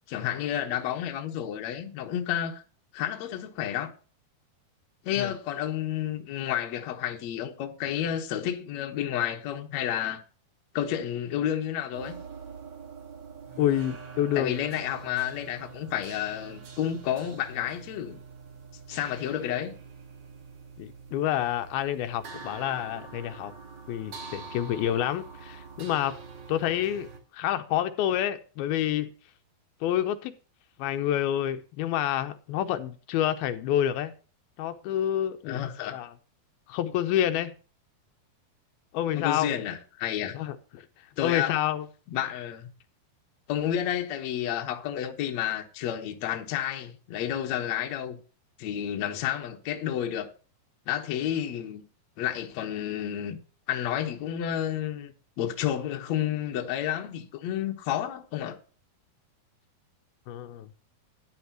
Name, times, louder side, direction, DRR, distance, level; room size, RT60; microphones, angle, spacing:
voice 1, 0.1-2.6 2.9-3.9 5.0-10.2 10.7-12.2 14.4-18.2 18.9-19.7 35.4-36.0 39.1-40.4 41.2-41.6 42.1-42.7 43.5-48.2 48.6-50.3 50.9-51.8 52.2-53.4 53.7-58.6, left 10 dB, 65° left, 1.9 m, -30 dB
sound 1, 11.9-27.2, right 5 dB, 50° right, 1.4 m, -45 dB
voice 2, 13.6-14.6 20.8-23.5 23.9-26.2 26.5-29.1 29.8-30.3 30.8-34.1 34.6-35.6 35.9-36.1 36.7-37.5 38.9-39.5 40.3-40.9 41.2-41.9 60.3-60.7, left 11 dB, 80° left, 2.5 m, -28 dB
13.0 x 10.5 x 2.9 m
omnidirectional pair, 4.5 m